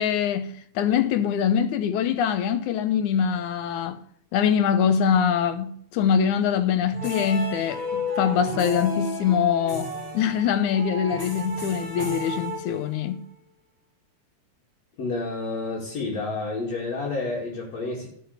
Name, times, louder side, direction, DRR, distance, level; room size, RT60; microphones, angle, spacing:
voice 1, 0.0-4.0 4.3-13.3, left 7 dB, 80° left, 2.4 m, -23 dB
sound 1, 6.9-13.2, left 2 dB, 25° left, 4.5 m, -33 dB
voice 2, 15.0-18.1, left 3 dB, 60° left, 3.3 m, -29 dB
13.5 x 6.4 x 6.6 m
omnidirectional pair, 3.5 m